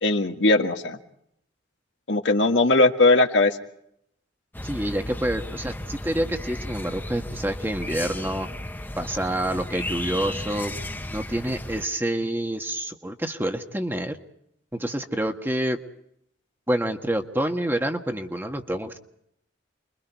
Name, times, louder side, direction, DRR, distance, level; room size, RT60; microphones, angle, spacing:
voice 1, 0.0-1.0 2.1-3.6, left 2 dB, 70° left, 5 dB, 1.8 m, -19 dB
sound 1, 4.5-11.8, left 1 dB, 10° left, 0.9 m, -34 dB
voice 2, 4.6-8.5 9.0-10.8 11.1-14.2 14.7-15.8 16.7-19.0, right 1 dB, 10° right, 5 dB, 1.5 m, -27 dB
29.5 x 23.0 x 4.7 m, 0.74 s
head